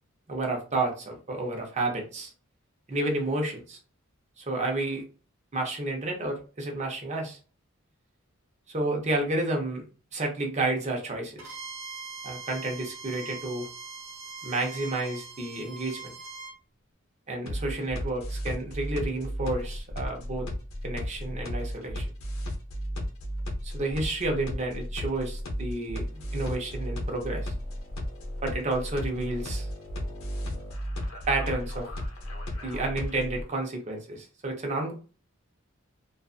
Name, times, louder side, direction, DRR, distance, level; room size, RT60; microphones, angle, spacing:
voice 1, 0.3-2.3 2.9-3.8 4.4-5.0 5.5-7.4 8.7-9.8 10.1-11.5 12.2-13.7 14.4-16.1 17.3-20.5 20.8-22.1 23.6-26.0 26.3-27.5 28.4-29.7 31.3-31.9 32.6-34.9, right 2 dB, 35° right, 1 dB, 0.7 m, -30 dB
Bowed string instrument, 11.4-16.6, right 4 dB, 65° right, 0.9 m, -42 dB
sound 1, 17.5-33.4, equal, 80° left, 0.7 m, -34 dB
2.5 x 2.4 x 2.4 m, 0.36 s
head